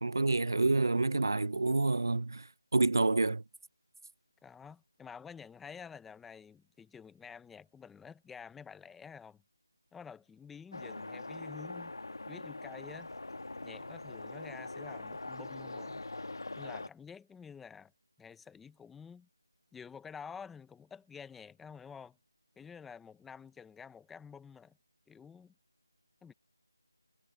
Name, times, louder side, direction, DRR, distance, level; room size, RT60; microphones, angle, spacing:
voice 1, 0.0-3.4, right 3 dB, 60° right, 0.3 m, -28 dB
voice 2, 4.4-9.4 9.9-12.0 12.3-13.1 13.6-16.0 16.6-17.9 18.2-19.3 19.7-22.2 22.6-24.8 25.1-25.5 26.2-26.3, left 6 dB, ahead, 0.6 m, -50 dB
sound 1, 10.7-16.9, left 2 dB, 75° left, 1.5 m, -43 dB
figure-of-eight pair, 175°, 2 cm